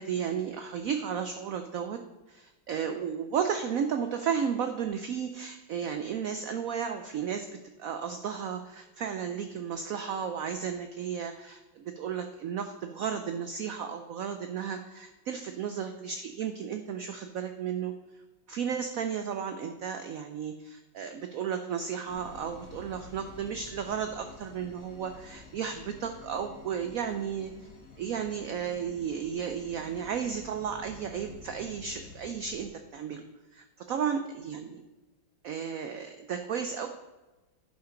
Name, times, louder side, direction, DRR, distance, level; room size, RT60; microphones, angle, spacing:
voice 1, 0.0-2.0 2.3-7.5 7.8-17.9 18.5-27.5 28.0-33.2 33.5-34.8 35.4-36.9, right 7 dB, 90° right, 7 dB, 0.7 m, -33 dB
sound 1, 22.1-32.7, left 3 dB, 55° left, 1.7 m, -50 dB
11.0 x 5.8 x 3.8 m, 1.1 s
omnidirectional pair, 2.1 m